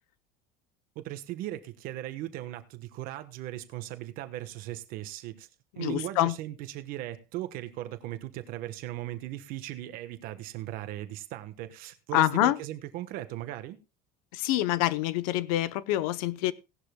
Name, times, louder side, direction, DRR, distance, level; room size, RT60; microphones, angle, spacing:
voice 1, 0.9-5.5 5.8-13.8, right 14 dB, 55° right, 1.2 m, -38 dB
voice 2, 5.7-6.3 12.1-12.6 14.3-16.5, left 14 dB, 85° left, 0.8 m, -26 dB
17.5 x 11.5 x 2.2 m
cardioid pair, 165°, 18 cm